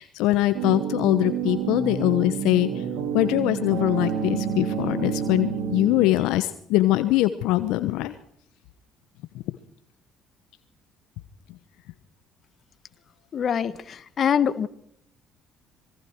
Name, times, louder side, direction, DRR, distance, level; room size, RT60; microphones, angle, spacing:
voice 1, 0.0-2.8 3.1-8.1 9.5-9.6, left 16 dB, 75° left, 11 dB, 1.0 m, -22 dB
sound 1, 0.5-6.4, right 7 dB, 70° right, 4.8 m, -29 dB
voice 2, 13.3-14.7, left 8 dB, 50° left, 13 dB, 1.5 m, -24 dB
26.5 x 21.5 x 4.6 m, 0.69 s
hypercardioid pair, 60°, 0 cm